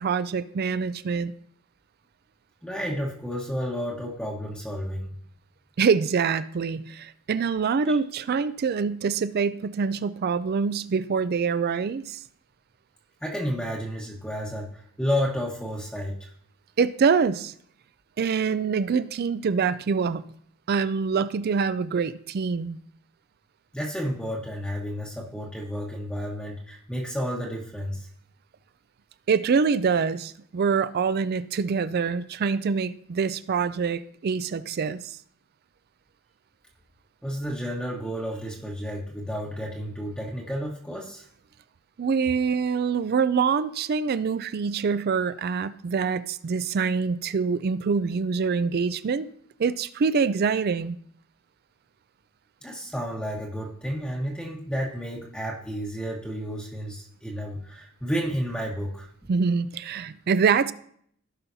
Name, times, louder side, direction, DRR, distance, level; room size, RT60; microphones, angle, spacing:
voice 1, 0.0-1.3 5.8-12.2 16.8-17.5 18.2-20.2 20.7-22.8 29.3-35.1 42.0-49.3 49.6-51.0 59.3-60.7, right 5 dB, 45° right, 0.4 m, -25 dB
voice 2, 2.6-5.1 13.2-16.3 23.7-28.1 37.2-41.3 52.6-59.1, equal, 5° left, 1.1 m, -31 dB
16.5 x 5.5 x 2.7 m
head